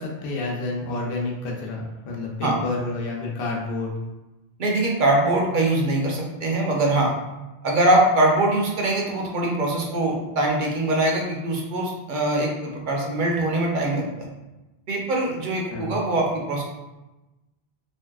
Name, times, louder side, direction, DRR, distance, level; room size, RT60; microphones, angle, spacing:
voice 1, 0.0-4.0 15.7-16.0, left 3 dB, 65° left, -2 dB, 0.8 m, -29 dB
voice 2, 4.6-7.1 7.6-14.0 14.9-16.6, right 1 dB, 55° right, -1 dB, 0.7 m, -22 dB
3.1 x 2.6 x 2.3 m, 1.0 s
omnidirectional pair, 1.1 m